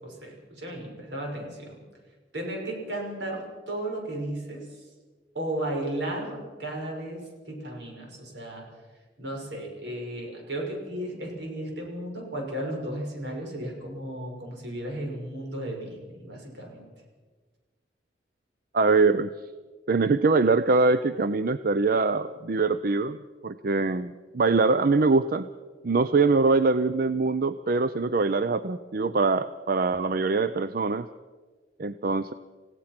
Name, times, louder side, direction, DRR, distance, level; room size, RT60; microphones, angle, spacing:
voice 1, 0.0-1.8 2.3-4.9 5.3-8.7 9.2-16.8, right 1 dB, 80° right, 0 dB, 6.1 m, -34 dB
voice 2, 18.7-19.3 19.9-23.2 23.4-25.5 25.8-31.1 31.8-32.3, right 3 dB, 55° right, 13 dB, 0.5 m, -23 dB
29.0 x 16.5 x 6.0 m, 1.4 s
head